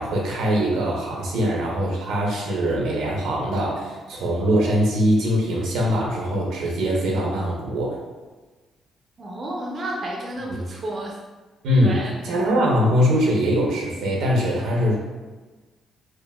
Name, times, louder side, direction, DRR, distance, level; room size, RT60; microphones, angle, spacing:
voice 1, 0.0-8.0 10.5-10.6 11.6-14.9, equal, 85° right, -3 dB, 0.8 m, -22 dB
voice 2, 9.2-11.2 11.8-12.1, right 1 dB, 40° right, -2 dB, 0.5 m, -31 dB
3.7 x 2.2 x 2.2 m, 1.3 s
cardioid pair, 90°, 0 cm